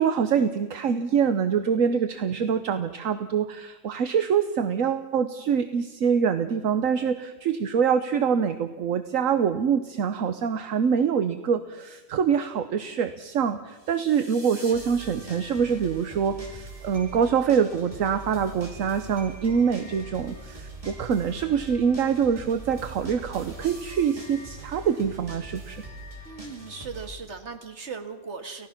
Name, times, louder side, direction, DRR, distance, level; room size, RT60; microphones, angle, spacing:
voice 1, 0.0-25.8, right 7 dB, 70° right, 10 dB, 1.3 m, -25 dB
voice 2, 1.9-2.5 26.3-28.7, right 5 dB, 50° right, 6 dB, 2.1 m, -39 dB
sound 1, 13.8-27.1, right 1 dB, 25° right, 3.1 m, -42 dB
29.5 x 16.5 x 5.9 m, 1.3 s
omnidirectional pair, 1.5 m